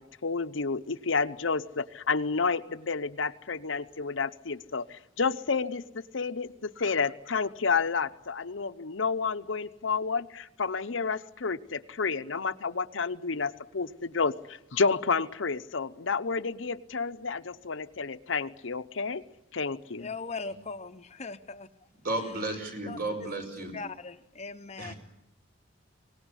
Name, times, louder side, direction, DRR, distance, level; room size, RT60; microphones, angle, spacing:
voice 1, 0.0-4.8 5.2-5.8 6.1-14.3 14.7-19.2 19.5-20.1, left 4 dB, 70° left, 11 dB, 0.8 m, -30 dB
voice 2, 20.0-21.7 22.2-22.3 22.8-23.3 23.7-24.9, left 4 dB, 35° left, 9 dB, 0.8 m, -40 dB
voice 3, 22.0-23.7 24.8-25.0, right 2 dB, 45° right, 5 dB, 5.4 m, -33 dB
24.0 x 19.0 x 9.9 m, 0.88 s
head